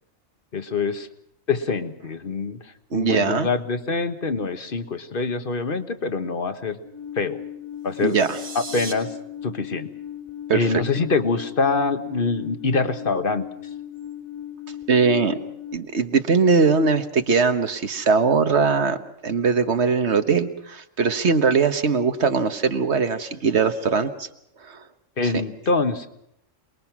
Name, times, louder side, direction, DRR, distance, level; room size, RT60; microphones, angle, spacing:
voice 1, 0.5-1.1 1.5-6.8 7.1-7.4 7.8-8.2 8.5-9.1 9.4-9.9 10.5-13.4 25.2-26.1, left 4 dB, 45° left, 9 dB, 1.5 m, -25 dB
voice 2, 2.9-3.5 8.0-8.4 10.5-10.7 14.9-15.4 15.7-19.0 19.2-24.3 24.6-24.8, right 5 dB, 60° right, 9 dB, 1.5 m, -20 dB
Alarm, 6.8-15.8, left 10 dB, 15° left, 2.0 m, -37 dB
sound 1, 7.9-8.9, right 3 dB, 85° right, 3.5 m, -37 dB
27.5 x 21.0 x 6.1 m, 0.75 s
omnidirectional pair, 1.3 m